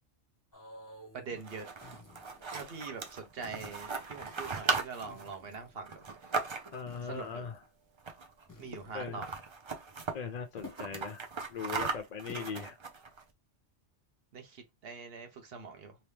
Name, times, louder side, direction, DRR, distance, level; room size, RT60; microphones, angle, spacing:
sound 1, 0.5-1.3 1.8-2.5 3.4-4.1 5.1-5.8 6.9-7.6 8.5-9.3 10.6-10.9 11.2-11.3 12.3-12.5, left 2 dB, 20° left, 0.9 m, -51 dB
voice 1, 1.1-1.7 2.5-6.0 7.1-7.5 8.6-9.3 12.3-12.5 14.3-16.0, right 5 dB, 55° right, 1.1 m, -43 dB
sound 2, 1.3-7.0 8.0-8.4 8.7-8.8 9.1-10.2 10.6-13.2, right 4 dB, 35° right, 0.5 m, -37 dB
voice 2, 6.7-7.6 8.9-9.2 10.1-11.2 11.5-12.8, left 6 dB, 55° left, 0.5 m, -39 dB
3.0 x 2.8 x 3.3 m
omnidirectional pair, 1.2 m